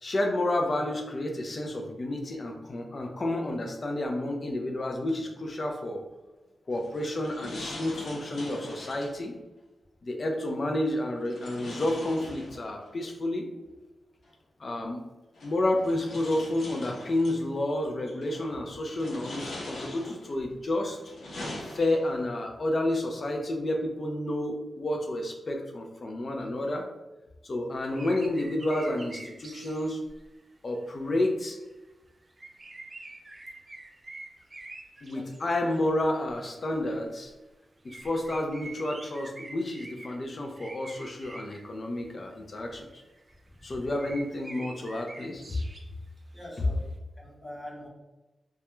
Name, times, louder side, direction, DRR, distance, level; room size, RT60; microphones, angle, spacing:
voice 1, 0.0-6.0 6.7-9.3 10.0-13.5 14.6-15.0 15.4-21.0 21.7-26.9 27.4-30.0 30.6-31.6 35.0-37.3 37.8-43.0 43.6-45.6 46.6-46.7, left 1 dB, 45° left, 3 dB, 0.4 m, -30 dB
sound 1, 6.7-9.2 11.2-12.9 14.3-14.4 15.3-17.4 18.1-18.4 18.9-20.4 20.9-22.3, left 1 dB, 90° left, 0.6 m, -42 dB
sound 2, 27.9-30.5 30.8-31.9 32.2-35.8 36.1-36.3 36.7-36.8 37.3-37.4 37.8-40.2 40.5-41.8 42.9-46.0 46.4-46.5, right 2 dB, 35° right, 0.3 m, -46 dB
voice 2, 35.1-35.9 43.7-43.8 46.3-47.9, left 1 dB, 15° left, -4 dB, 0.8 m, -45 dB
2.3 x 2.1 x 2.9 m, 1.1 s
wide cardioid pair, 105°, 0 cm